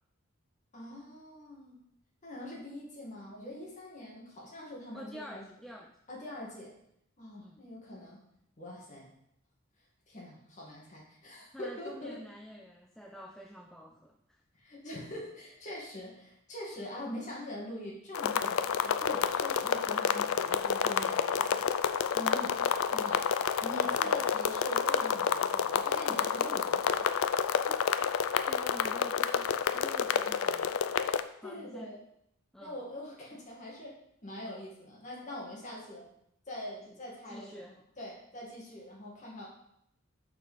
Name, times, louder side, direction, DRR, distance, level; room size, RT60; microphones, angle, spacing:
voice 1, 0.7-1.8 2.2-5.4 6.1-6.7 7.2-8.2 8.6-9.1 10.1-12.2 14.6-21.7 22.1-22.5 22.8-23.2 23.6-27.1 31.4-32.0 32.6-34.0 34.2-36.1 36.5-39.5, left 1 dB, 35° left, -4 dB, 2.3 m, -43 dB
voice 2, 4.9-6.0 7.4-7.6 11.5-14.4 24.0-24.1 27.7-28.1 28.5-30.8 31.4-32.0 32.5-32.8 36.9-37.0 37.3-37.8, equal, ahead, 1 dB, 0.3 m, -48 dB
sound 1, 18.1-31.2, left 7 dB, 85° left, 0.4 m, -29 dB
5.9 x 5.0 x 5.3 m, 0.74 s
head